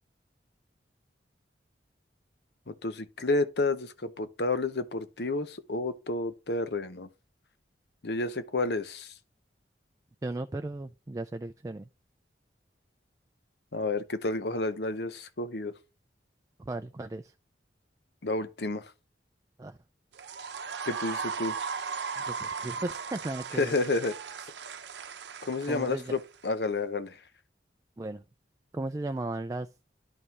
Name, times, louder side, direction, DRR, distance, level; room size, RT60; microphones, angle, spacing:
voice 1, 2.7-7.1 8.0-9.1 13.7-15.7 18.2-18.8 20.9-21.6 23.6-24.1 25.4-27.1, left 2 dB, 65° left, 0.9 m, -30 dB
voice 2, 10.2-11.9 16.6-17.3 19.6-19.8 22.2-23.7 25.7-26.1 28.0-28.2 28.7-29.7, right 2 dB, 20° right, 0.3 m, -36 dB
sound 1, 20.1-26.5, right 5 dB, 70° right, 0.7 m, -37 dB
11.0 x 5.4 x 2.9 m
head